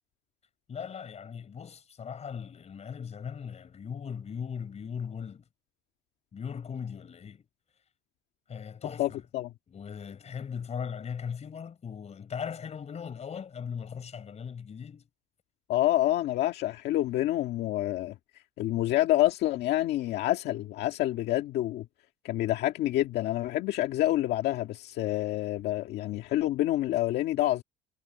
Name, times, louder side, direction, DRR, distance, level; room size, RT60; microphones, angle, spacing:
voice 1, 0.7-5.4 6.3-7.4 8.5-9.2 9.7-15.1, left 7 dB, 40° left, 4.8 m, -38 dB
voice 2, 9.0-9.5 15.7-18.2 18.6-21.9 22.2-27.6, left 14 dB, 80° left, 1.8 m, -27 dB
cardioid pair, 110°, 17 cm